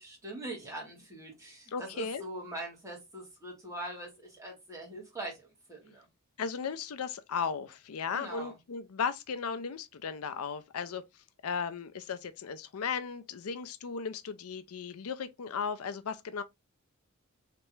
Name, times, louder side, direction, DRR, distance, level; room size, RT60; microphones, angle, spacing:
voice 1, 0.0-5.4 5.7-6.1 8.1-8.5, right 1 dB, 15° right, 1.8 m, -42 dB
voice 2, 1.7-2.2 6.4-11.0 11.4-16.4, left 6 dB, 80° left, 0.5 m, -36 dB
3.4 x 3.0 x 3.1 m
head